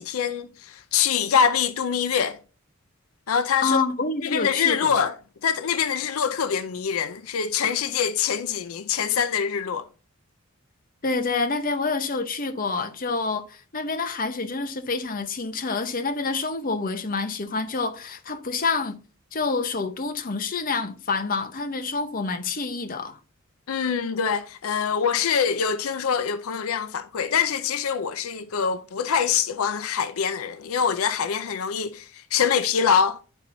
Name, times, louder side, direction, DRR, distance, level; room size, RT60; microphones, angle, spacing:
voice 1, 0.0-2.4 3.3-3.8 4.2-5.2 5.4-9.9 23.7-33.2, left 7 dB, 85° left, 0.5 m, -24 dB
voice 2, 3.6-5.0 11.0-19.0 19.3-23.2, left 4 dB, 40° left, 0.8 m, -27 dB
11.0 x 4.2 x 2.6 m
head